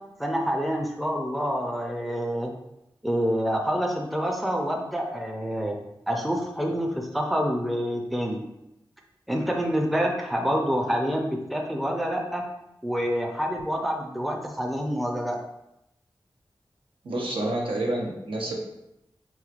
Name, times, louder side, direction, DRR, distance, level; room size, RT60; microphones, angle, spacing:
voice 1, 0.2-2.5 3.0-5.8 6.1-8.4 9.3-12.4 12.8-15.4, equal, ahead, 1 dB, 0.4 m, -27 dB
voice 2, 17.0-18.5, right 1 dB, 75° right, -1 dB, 0.7 m, -28 dB
3.3 x 3.0 x 2.4 m, 0.86 s
wide cardioid pair, 65°, 9 cm